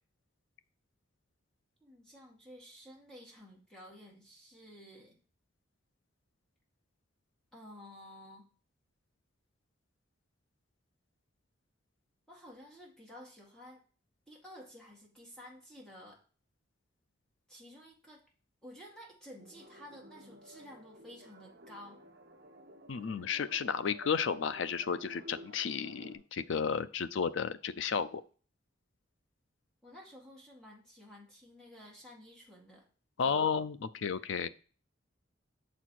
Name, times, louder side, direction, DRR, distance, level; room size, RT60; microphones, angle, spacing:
voice 1, 1.8-5.2 7.5-8.5 12.3-13.8 14.3-16.2 17.5-18.2 18.6-22.0 29.8-32.9 33.2-33.5, equal, 5° left, -3 dB, 1.8 m, -52 dB
sound 1, 19.4-26.2, equal, 50° right, 1.1 m, -54 dB
voice 2, 22.9-28.2 33.2-34.5, left 6 dB, 65° left, 14 dB, 0.4 m, -33 dB
6.8 x 4.3 x 4.5 m, 0.39 s
head